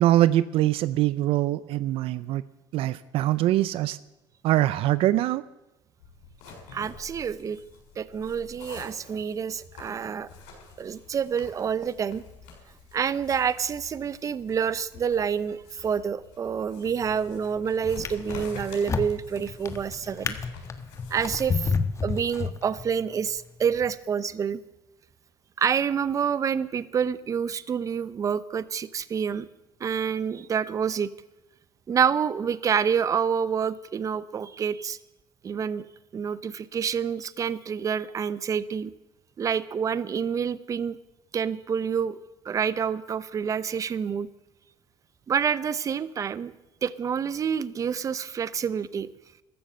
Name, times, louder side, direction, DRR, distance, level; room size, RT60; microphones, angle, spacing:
voice 1, 0.0-2.4 2.7-4.0 4.4-5.4, right 14 dB, 65° right, 16 dB, 0.6 m, -23 dB
sound 1, 6.0-21.2, left 4 dB, 85° left, 6.4 m, -48 dB
voice 2, 6.7-7.6 8.0-10.3 10.8-12.2 12.9-20.4 21.1-21.7 22.0-24.6 25.6-29.5 29.8-31.1 31.9-35.0 35.4-35.9 36.1-38.9 39.4-41.0 41.3-42.2 42.4-44.3 45.3-46.5 46.8-49.1, right 7 dB, 30° right, 16 dB, 0.7 m, -28 dB
Drawer open or close, 16.9-17.3 17.8-23.0 23.7-23.9, left 5 dB, 30° left, 1.3 m, -31 dB
14.0 x 12.5 x 7.7 m, 0.98 s
cardioid pair, 115°, 10 cm